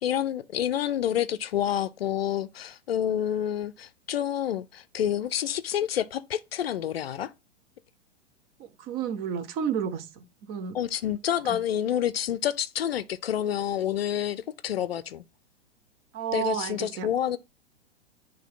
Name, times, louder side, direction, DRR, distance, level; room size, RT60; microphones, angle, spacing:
voice 1, 0.0-7.3 10.7-15.2 16.3-17.4, left 10 dB, 60° left, 0.6 m, -28 dB
voice 2, 8.6-10.1 10.5-10.8 11.5-11.6 16.1-17.1, right 8 dB, 25° right, 0.8 m, -31 dB
9.9 x 3.3 x 3.8 m
figure-of-eight pair, 105°, 35 cm